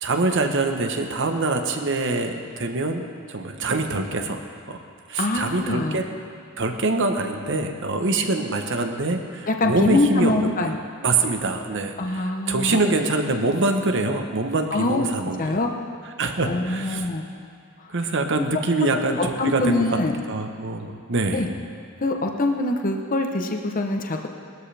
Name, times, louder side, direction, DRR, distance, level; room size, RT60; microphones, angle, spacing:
voice 1, 0.0-4.8 5.1-6.0 6.6-10.7 11.0-15.5 16.2-17.0 17.9-19.9 20.3-21.5, right 3 dB, 55° right, 5 dB, 1.1 m, -24 dB
voice 2, 5.2-6.0 9.5-10.8 12.0-12.8 14.7-15.1 15.4-15.7 16.5-17.2 19.2-20.1 21.3-21.5 22.0-24.3, left 2 dB, 40° left, 3 dB, 0.9 m, -24 dB
19.5 x 13.0 x 3.4 m, 2.2 s
head